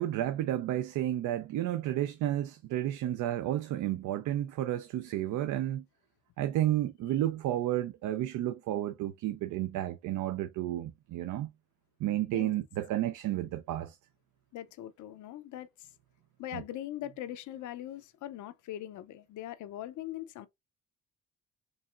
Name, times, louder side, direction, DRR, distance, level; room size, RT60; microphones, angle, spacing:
voice 1, 0.0-5.8 6.4-11.5 12.0-14.0 16.5-16.6, right 13 dB, 80° right, 0.5 m, -31 dB
voice 2, 14.5-15.9 16.4-20.5, left 13 dB, 80° left, 0.6 m, -41 dB
4.7 x 3.1 x 2.4 m
cardioid pair, 90°, 30 cm